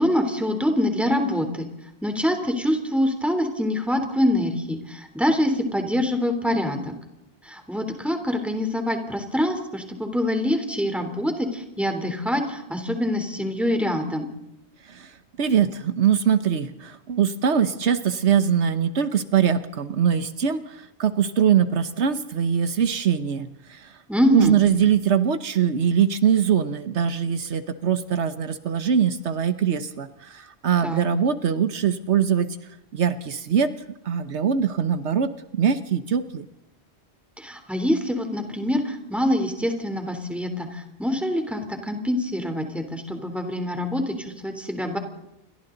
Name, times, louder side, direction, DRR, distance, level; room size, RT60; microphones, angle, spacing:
voice 1, 0.0-1.7 2.0-6.9 7.4-14.3 24.1-24.6 30.8-31.1 37.4-45.0, left 1 dB, ahead, 4 dB, 3.3 m, -25 dB
voice 2, 15.4-23.9 24.3-32.6 32.9-33.7 34.1-36.5, right 8 dB, 80° right, 11 dB, 1.3 m, -22 dB
29.0 x 24.0 x 3.9 m, 0.87 s
omnidirectional pair, 1.1 m